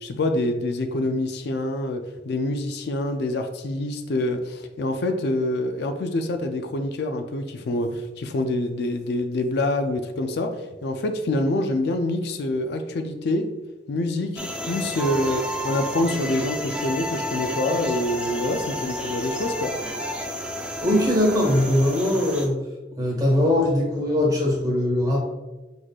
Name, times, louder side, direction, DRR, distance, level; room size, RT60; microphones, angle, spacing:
voice 1, 0.0-13.5 13.9-19.8, left 1 dB, 65° left, 7 dB, 0.4 m, -26 dB
sound 1, 14.4-22.5, left 1 dB, 5° right, 0.4 m, -31 dB
voice 2, 20.8-22.6 23.0-25.2, left 1 dB, 20° right, -3 dB, 1.2 m, -21 dB
4.7 x 4.0 x 2.3 m, 1.2 s
head